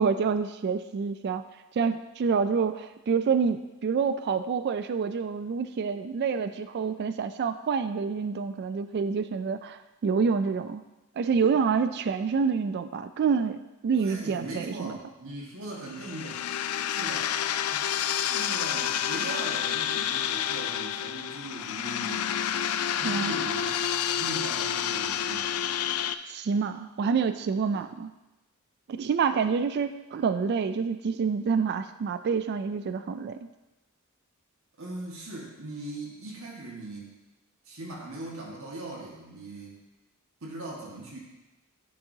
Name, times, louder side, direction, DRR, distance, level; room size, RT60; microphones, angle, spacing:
voice 1, 0.0-1.4 1.8-10.8 11.2-14.9 23.0-23.3 26.3-28.1 28.9-33.5, right 5 dB, 50° right, 11 dB, 0.3 m, -27 dB
voice 2, 13.9-16.4 16.9-17.3 17.6-22.3 23.0-23.8 24.2-25.5 27.7-27.9 34.8-37.1 37.6-39.8 40.4-41.2, right 2 dB, 65° right, -3 dB, 1.6 m, -39 dB
sound 1, 15.9-26.1, left 9 dB, 80° left, 0.4 m, -29 dB
10.5 x 6.7 x 2.8 m, 1.0 s
head